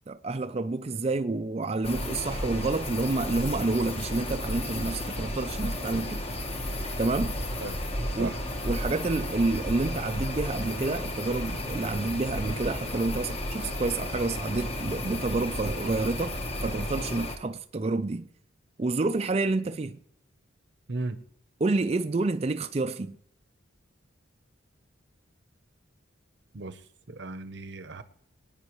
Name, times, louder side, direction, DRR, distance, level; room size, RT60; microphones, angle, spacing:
voice 1, 0.1-6.2 7.0-7.4 8.2-8.3 8.6-18.3 18.8-20.0 21.6-23.2, right 3 dB, 30° right, 0.4 m, -29 dB
sound 1, 1.8-17.4, left 1 dB, 30° left, 1.2 m, -33 dB
voice 2, 20.9-21.2 26.5-28.0, right 2 dB, 60° right, 0.8 m, -36 dB
24.0 x 9.0 x 3.1 m
head